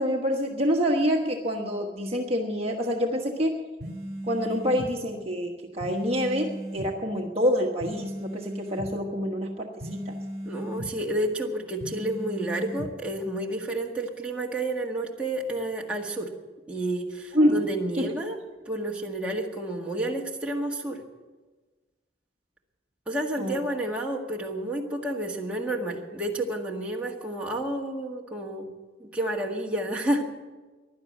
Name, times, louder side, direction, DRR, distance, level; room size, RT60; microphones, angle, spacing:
voice 1, 0.0-3.6 4.2-10.1 17.3-17.6 18.0-18.1 23.4-23.6, equal, 35° right, 0 dB, 1.2 m, -26 dB
sound 1, 3.8-4.9 5.8-6.9 7.8-8.9 9.8-10.9 11.8-12.9, equal, 50° right, 2.0 m, -36 dB
voice 2, 10.5-16.3 16.7-18.4 18.7-21.0 23.1-28.7 29.0-30.2, right 1 dB, 5° right, -2 dB, 1.7 m, -30 dB
16.0 x 11.5 x 7.6 m, 1.3 s
head